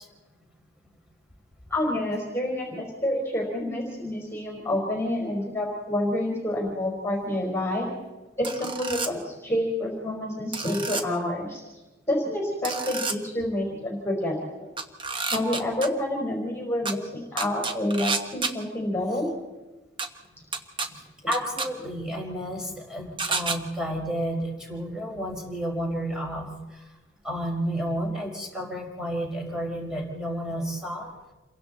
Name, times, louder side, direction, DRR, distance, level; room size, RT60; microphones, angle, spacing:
voice 1, 1.7-7.9 8.4-11.6 12.1-14.7 15.3-19.3, left 1 dB, 15° left, 0 dB, 4.6 m, -28 dB
sound 1, 8.4-9.1 10.5-11.0 12.6-13.2 14.8-15.9 16.9-17.0 17.4-18.5 20.0-20.1 20.5-20.9 21.3-21.7 23.2-23.6, right 4 dB, 25° right, 1.3 m, -29 dB
voice 2, 20.9-26.5 27.2-31.1, equal, 5° right, -2 dB, 5.3 m, -31 dB
28.5 x 23.0 x 4.2 m, 1.1 s
head